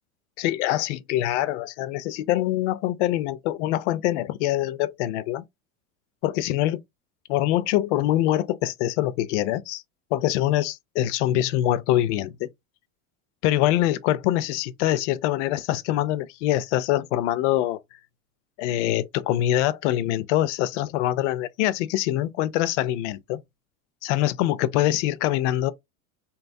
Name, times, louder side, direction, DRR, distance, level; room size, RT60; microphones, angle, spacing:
voice 1, 0.4-5.4 6.2-6.8 7.3-9.8 10.1-12.5 13.4-17.8 18.6-23.4 24.0-25.7, left 14 dB, 60° left, 0.5 m, -24 dB
2.8 x 2.3 x 2.5 m
supercardioid pair, 150°, 40 cm